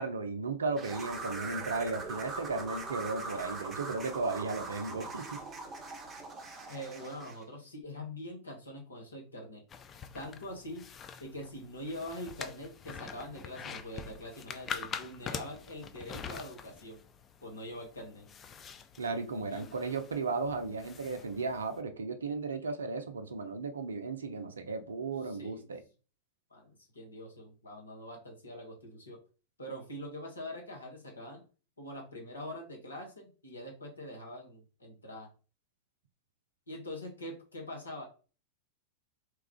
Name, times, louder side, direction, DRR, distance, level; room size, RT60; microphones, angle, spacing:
voice 1, 0.0-5.4 19.0-25.8, right 3 dB, 70° right, 0.5 m, -35 dB
sound 1, 0.8-7.4, right 3 dB, 20° right, 0.7 m, -41 dB
voice 2, 6.7-9.6 10.1-10.8 11.2-17.0 17.4-18.3 19.5-19.7 25.2-25.7 26.5-29.2 29.6-31.4 31.8-35.3 36.7-38.1, left 1 dB, 80° left, 1.0 m, -44 dB
sound 2, 9.7-21.8, left 6 dB, 25° left, 0.3 m, -45 dB
3.0 x 2.3 x 3.5 m
figure-of-eight pair, 90°, 0 cm